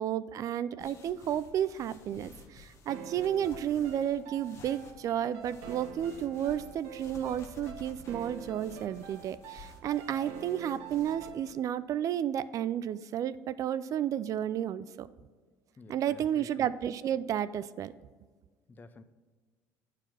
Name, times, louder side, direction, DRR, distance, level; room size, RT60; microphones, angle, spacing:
voice 1, 0.0-15.1 15.9-17.9, right 10 dB, 50° right, 15 dB, 0.4 m, -32 dB
sound 1, 0.8-11.3, left 5 dB, 40° left, 1.3 m, -53 dB
sound 2, 2.9-11.8, right 6 dB, 80° right, 0.9 m, -47 dB
voice 2, 15.8-16.7 18.7-19.0, left 3 dB, 25° left, 12 dB, 0.6 m, -50 dB
8.8 x 4.9 x 5.8 m, 1.5 s
supercardioid pair, 100°, 7 cm